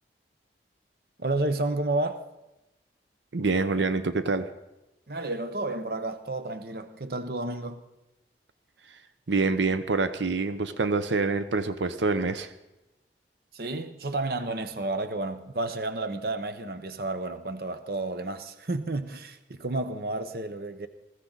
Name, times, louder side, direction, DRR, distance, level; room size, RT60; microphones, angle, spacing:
voice 1, 1.2-2.3 5.1-7.8 13.5-20.9, right 2 dB, 55° right, 0.9 m, -31 dB
voice 2, 3.3-4.5 9.3-12.5, right 3 dB, 85° right, 0.8 m, -26 dB
20.5 x 15.0 x 4.0 m
head